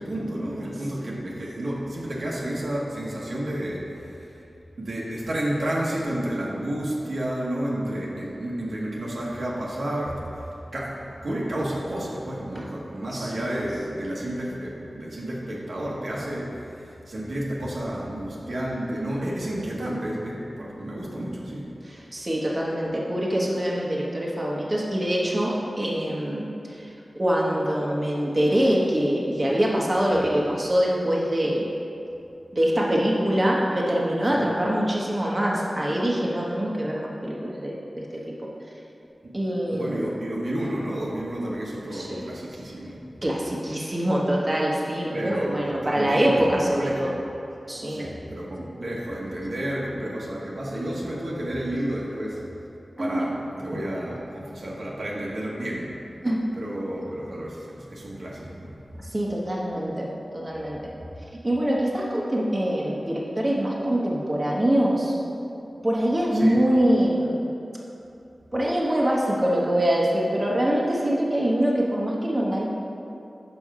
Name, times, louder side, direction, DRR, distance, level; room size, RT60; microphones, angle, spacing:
voice 1, 0.0-4.3 4.8-10.3 10.7-16.5 16.8-21.7 30.3-30.4 34.3-34.5 39.2-39.3 39.7-43.0 45.1-47.2 47.9-52.4 53.0-55.9 56.5-58.7 66.3-66.6, right 1 dB, 80° right, -5 dB, 1.3 m, -31 dB
voice 2, 21.8-26.5 27.1-31.6 32.5-38.5 39.3-40.0 41.9-42.3 43.2-47.1 47.7-48.1 53.0-53.3 53.7-53.8 56.2-56.4 59.1-60.9 61.4-65.1 65.8-67.4 68.5-72.7, equal, 35° right, -4 dB, 1.1 m, -24 dB
6.1 x 5.5 x 4.8 m, 2.8 s
wide cardioid pair, 55°, 0 cm